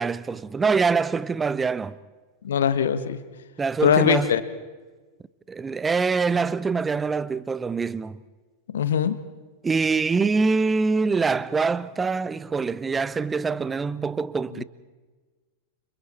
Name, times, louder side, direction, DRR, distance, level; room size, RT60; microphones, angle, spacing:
voice 1, 0.0-2.0 3.6-4.3 5.5-8.2 9.6-14.6, right 4 dB, 15° right, 0.7 m, -24 dB
voice 2, 2.4-3.2 3.8-4.4 8.7-9.2 14.6-14.7, left 8 dB, 65° left, 1.3 m, -21 dB
30.0 x 26.0 x 4.3 m
figure-of-eight pair, 90°, 0 cm